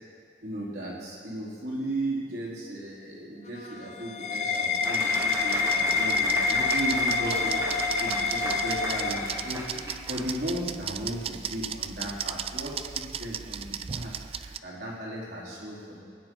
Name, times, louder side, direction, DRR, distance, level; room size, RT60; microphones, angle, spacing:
voice 1, 0.4-16.0, right 1 dB, 70° right, -6 dB, 4.0 m, -36 dB
sound 1, 3.5-9.9, left 4 dB, 40° left, 0.8 m, -27 dB
sound 2, 4.4-14.6, right 8 dB, 35° right, 0.3 m, -37 dB
Applause, 4.8-10.6, right 2 dB, 20° right, 0.8 m, -36 dB
20.0 x 10.0 x 4.7 m, 2.2 s
head